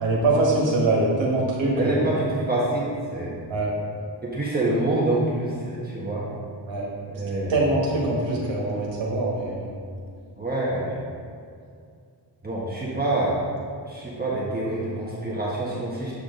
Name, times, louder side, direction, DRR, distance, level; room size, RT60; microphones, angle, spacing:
voice 1, 0.0-2.0 3.5-3.7 6.7-6.8 7.5-9.7, right 2 dB, 85° right, -3 dB, 1.6 m, -23 dB
voice 2, 1.7-3.4 4.2-6.3 7.1-7.7 10.4-10.9 12.4-13.4 13.8-16.1, right 2 dB, 20° right, -7 dB, 1.5 m, -26 dB
8.0 x 4.9 x 3.9 m, 2.3 s
cardioid pair, 70°, 44 cm